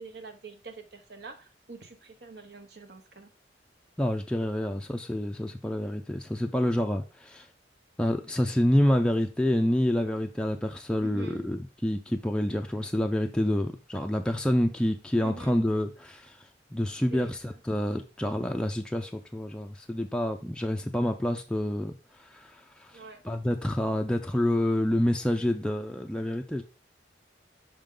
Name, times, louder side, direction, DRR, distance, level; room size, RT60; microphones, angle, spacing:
voice 1, 0.0-3.3 11.0-11.5 15.2-15.6 17.1-17.3 22.9-23.2, right 3 dB, 60° right, 6 dB, 1.0 m, -45 dB
voice 2, 4.0-7.5 8.0-16.4 16.7-26.6, left 1 dB, 5° left, 3 dB, 0.4 m, -28 dB
5.4 x 5.3 x 3.7 m, 0.32 s
head